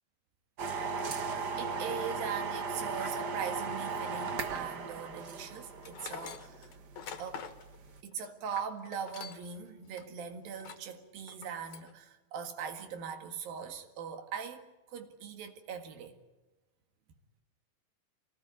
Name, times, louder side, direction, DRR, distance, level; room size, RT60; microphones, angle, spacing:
sound 1, 0.6-8.0, right 5 dB, 60° right, 1.0 m, -37 dB
voice 1, 1.6-6.7 7.2-7.5 8.0-16.2, right 7 dB, 80° right, 3.7 m, -41 dB
Tools, 5.8-9.6 9.9-10.1 10.5-10.9 11.3-11.9, left 7 dB, 65° left, 2.6 m, -45 dB
24.5 x 18.5 x 9.5 m
omnidirectional pair, 4.0 m